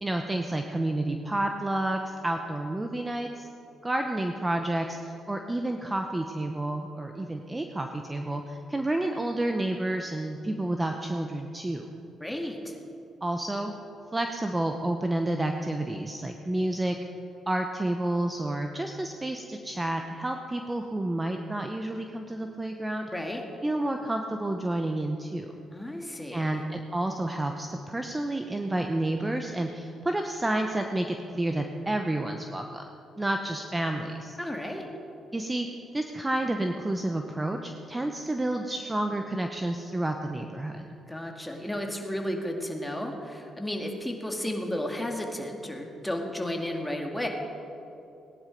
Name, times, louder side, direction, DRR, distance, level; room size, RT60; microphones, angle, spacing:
voice 1, 0.0-3.5 3.8-11.9 13.2-13.7 14.1-17.0 17.5-23.1 23.6-25.5 26.3-32.9 33.2-34.4 35.3-35.7 35.9-40.9, right 1 dB, 15° right, 4 dB, 0.9 m, -30 dB
voice 2, 12.2-12.8 23.1-23.4 25.7-26.6 34.4-34.9 41.1-47.3, left 1 dB, 5° left, 1 dB, 2.1 m, -33 dB
18.5 x 10.5 x 5.3 m, 2.8 s
cardioid pair, 90°, 0 cm